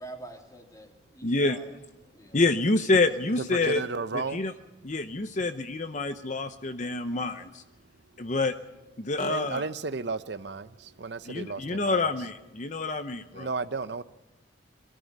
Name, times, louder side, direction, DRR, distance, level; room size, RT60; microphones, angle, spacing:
voice 1, 0.0-1.7 2.0-2.4, right 2 dB, 20° left, 2.8 m, -45 dB
voice 2, 1.2-1.6 2.3-3.8 4.3-4.5 4.8-7.6 8.2-8.5 9.0-9.6 11.3-13.5, left 2 dB, 40° left, 0.8 m, -27 dB
voice 3, 3.4-4.4 9.2-10.7 11.0-12.1 13.3-14.0, right 4 dB, 65° right, 0.7 m, -33 dB
23.0 x 14.0 x 9.4 m
head